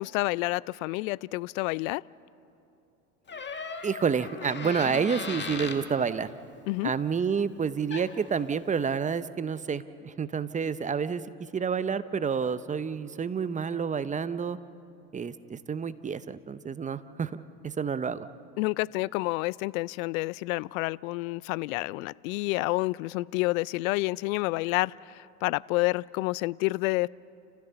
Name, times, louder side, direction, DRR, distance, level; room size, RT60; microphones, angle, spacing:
voice 1, 0.0-2.0 6.7-6.9 18.6-27.1, left 22 dB, 65° left, 23 dB, 0.5 m, -29 dB
Door, 3.3-5.8 7.6-7.7 7.9-8.3, left 4 dB, 25° left, 2.0 m, -37 dB
voice 2, 3.8-6.3 6.8-11.2 11.5-14.6 15.1-17.3 17.6-18.3, right 6 dB, 15° right, 14 dB, 0.7 m, -29 dB
30.0 x 15.0 x 6.9 m, 2.7 s
hypercardioid pair, 90°, 44 cm